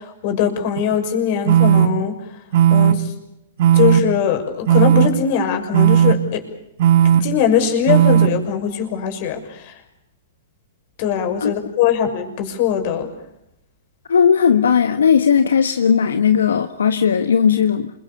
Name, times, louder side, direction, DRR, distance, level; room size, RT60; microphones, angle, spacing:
voice 1, 0.0-2.2 2.7-3.1 3.7-6.4 7.1-9.7 11.0-13.1, left 8 dB, 50° left, 6 dB, 6.2 m, -21 dB
sound 1, 0.8-0.9 1.5-1.9 2.5-2.9 3.6-4.0 4.7-5.1 5.7-6.1 6.8-7.2 7.9-8.3, right 10 dB, 60° right, 2.2 m, -13 dB
voice 2, 14.1-17.9, left 7 dB, 80° left, 8 dB, 1.4 m, -16 dB
28.0 x 23.5 x 7.0 m, 0.82 s
hypercardioid pair, 120°, 0 cm